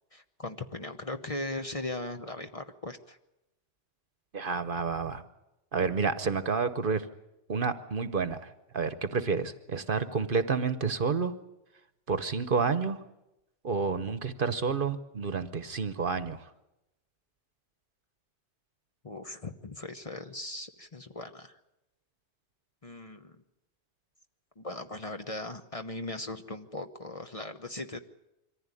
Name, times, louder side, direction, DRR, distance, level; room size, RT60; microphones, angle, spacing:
voice 1, 0.1-3.2 19.0-21.5 22.8-23.4 24.6-28.0, left 2 dB, 30° left, 7 dB, 1.0 m, -38 dB
voice 2, 4.3-5.3 5.7-7.1 7.5-11.3 12.1-13.0 13.6-16.5, right 5 dB, 50° right, 12 dB, 1.1 m, -30 dB
24.0 x 15.0 x 9.8 m, 0.94 s
omnidirectional pair, 1.2 m